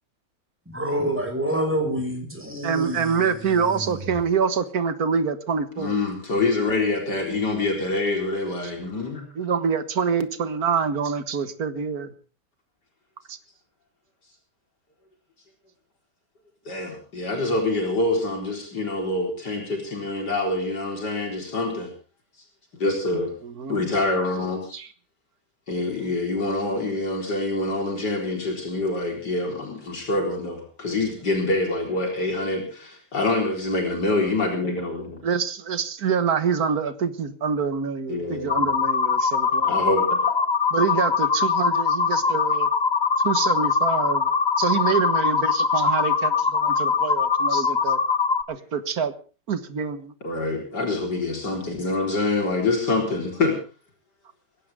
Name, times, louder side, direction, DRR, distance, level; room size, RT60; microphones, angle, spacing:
voice 1, 0.7-4.1, right 1 dB, 5° right, 3 dB, 5.8 m, -28 dB
voice 2, 2.6-5.9 9.4-12.1 13.3-13.4 23.4-23.9 24.7-24.9 35.2-39.8 40.7-42.7 43.2-44.3 44.6-48.0 48.5-49.1 49.5-50.1, right 6 dB, 60° right, 11 dB, 2.0 m, -26 dB
voice 3, 5.8-9.3 16.6-21.9 22.8-23.3 23.7-24.8 25.7-35.2 38.1-38.7 39.6-40.4 50.2-53.6, left 2 dB, 75° left, 2 dB, 4.8 m, -26 dB
sound 1, 38.5-48.4, left 5 dB, 30° left, 1.1 m, -22 dB
21.5 x 16.5 x 3.6 m, 0.37 s
omnidirectional pair, 1.8 m